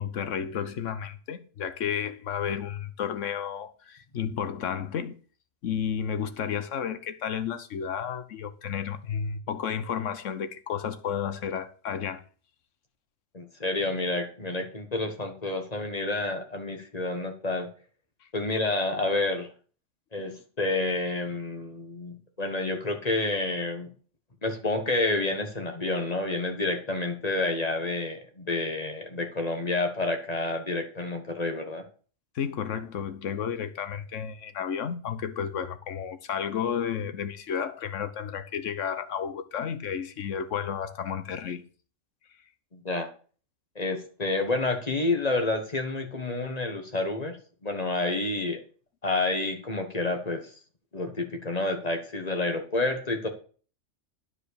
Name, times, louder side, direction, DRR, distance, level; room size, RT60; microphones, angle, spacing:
voice 1, 0.0-5.2 5.6-12.2 32.3-41.6, left 8 dB, 80° left, 1.2 m, -32 dB
voice 2, 13.3-17.7 18.3-19.5 20.1-23.9 24.4-31.8 42.7-43.1 43.7-47.4 47.6-48.6 49.0-50.5 50.9-53.3, left 2 dB, 35° left, 1.4 m, -29 dB
9.9 x 4.9 x 6.6 m
omnidirectional pair, 1.3 m